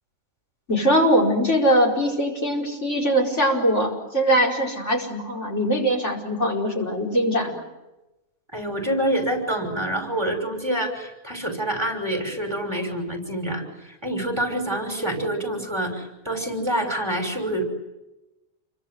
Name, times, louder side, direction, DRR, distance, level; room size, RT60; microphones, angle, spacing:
voice 1, 0.7-7.6, equal, 60° left, 0 dB, 5.3 m, -21 dB
voice 2, 8.5-17.6, right 1 dB, 20° right, 4 dB, 6.1 m, -27 dB
29.0 x 24.0 x 8.0 m, 0.99 s
omnidirectional pair, 1.4 m